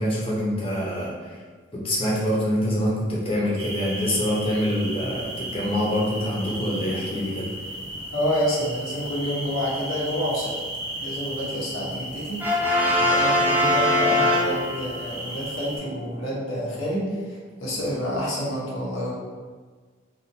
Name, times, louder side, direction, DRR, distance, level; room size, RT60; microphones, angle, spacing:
voice 1, 0.0-1.4 1.7-7.5, equal, 30° left, -6 dB, 0.8 m, -25 dB
sound 1, 3.6-15.8, right 1 dB, 80° right, 1.1 m, -35 dB
voice 2, 8.1-10.5 11.0-12.5 13.0-19.1, equal, 85° left, -6 dB, 1.1 m, -28 dB
Brass instrument, 12.4-15.1, left 1 dB, 10° right, 0.4 m, -21 dB
4.1 x 2.5 x 2.8 m, 1.5 s
head